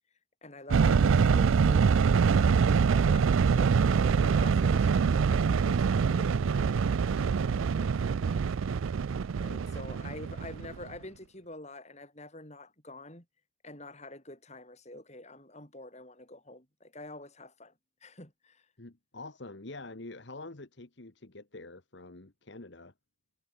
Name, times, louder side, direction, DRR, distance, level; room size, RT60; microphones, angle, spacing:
voice 1, 0.4-8.4 9.4-13.3 13.6-17.7 18.0-18.7, left 2 dB, 35° left, 7.1 m, -47 dB
sound 1, 0.7-10.9, right 6 dB, 75° right, 0.4 m, -25 dB
voice 2, 18.8-22.9, left 2 dB, 55° left, 1.4 m, -46 dB
head